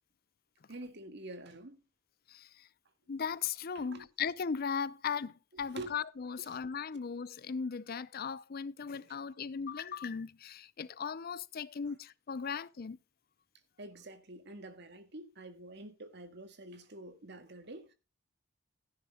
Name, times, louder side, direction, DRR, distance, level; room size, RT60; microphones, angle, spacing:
voice 1, 0.7-1.8 3.8-4.1 5.6-5.9 6.4-6.5 9.2-9.3 13.8-17.9, right 1 dB, 60° right, 1.8 m, -47 dB
voice 2, 3.1-13.0, left 6 dB, 50° left, 0.5 m, -37 dB
16.0 x 10.5 x 2.2 m
head